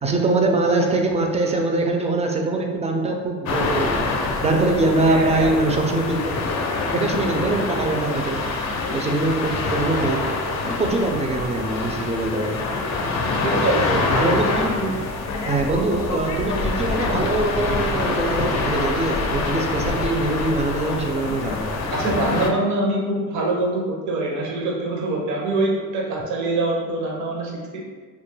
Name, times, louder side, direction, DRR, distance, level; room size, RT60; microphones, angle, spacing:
voice 1, 0.0-4.1 4.4-6.4 6.9-8.4 8.9-10.2 10.6-12.6 14.2-14.9 15.5-21.8, right 2 dB, 20° right, 2 dB, 0.3 m, -23 dB
sound 1, 3.5-22.5, left 3 dB, 65° left, 0.4 m, -25 dB
voice 2, 5.1-5.5 13.4-14.1 21.9-27.9, right 2 dB, 70° right, -1 dB, 0.6 m, -24 dB
2.2 x 2.1 x 3.2 m, 1.4 s
cardioid pair, 90°, 30 cm